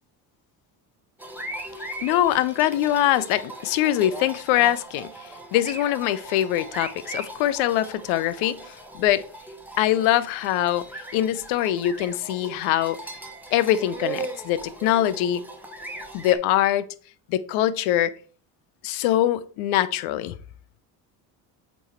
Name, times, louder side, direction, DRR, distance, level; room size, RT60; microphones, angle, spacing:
sound 1, 1.2-16.4, right 2 dB, 5° right, 1.3 m, -38 dB
voice 1, 2.0-9.2 9.8-13.0 13.5-15.4 16.1-16.9 17.3-18.1 18.8-20.3, left 12 dB, 80° left, 0.7 m, -23 dB
7.8 x 3.1 x 4.4 m
supercardioid pair, 80°, 48 cm